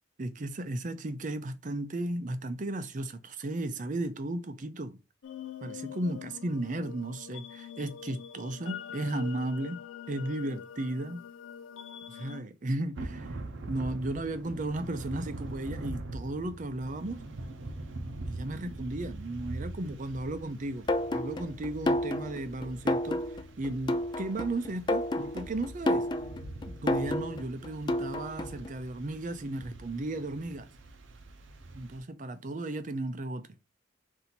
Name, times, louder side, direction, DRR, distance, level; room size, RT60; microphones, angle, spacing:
voice 1, 0.2-5.0 5.6-9.8 10.1-11.2 12.1-13.4 13.7-17.2 18.2-20.9 21.1-23.2 23.6-26.1 26.7-30.7 31.7-33.5, right 1 dB, 40° right, 0.5 m, -35 dB
sound 1, 5.2-12.4, left 8 dB, 85° left, 0.5 m, -44 dB
Thunder / Rain, 12.9-32.0, right 2 dB, 85° right, 0.7 m, -43 dB
sound 2, 20.9-28.7, left 1 dB, 25° left, 0.3 m, -31 dB
4.0 x 2.7 x 4.2 m
head